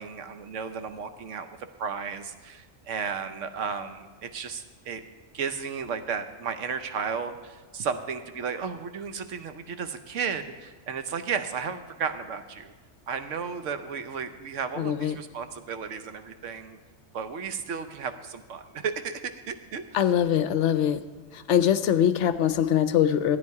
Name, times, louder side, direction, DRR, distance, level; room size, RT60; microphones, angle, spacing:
voice 1, 0.0-1.5 1.8-5.0 5.3-12.7 13.1-16.8 17.1-19.8, right 6 dB, 70° right, 9 dB, 1.1 m, -34 dB
voice 2, 14.8-15.2 19.9-21.0 21.3-23.4, left 10 dB, 70° left, 12 dB, 0.9 m, -23 dB
13.5 x 9.2 x 4.7 m, 1.3 s
omnidirectional pair, 1.3 m